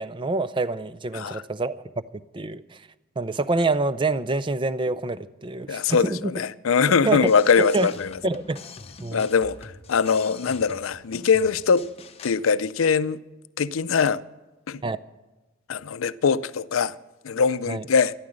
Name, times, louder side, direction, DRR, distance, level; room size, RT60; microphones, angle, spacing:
voice 1, 0.0-2.8 3.2-6.3 7.0-7.2 7.7-7.9 8.2-8.6 9.0-9.3 14.8-15.0 17.7-17.8, right 3 dB, 25° right, 0.4 m, -26 dB
voice 2, 5.7-8.1 9.1-11.9 12.2-13.2 13.6-14.2 14.7-14.8 15.7-16.9 17.2-18.1, left 6 dB, 80° left, 0.5 m, -22 dB
sound 1, 7.2-12.4, left 4 dB, 30° left, 0.8 m, -44 dB
13.5 x 12.0 x 6.3 m
head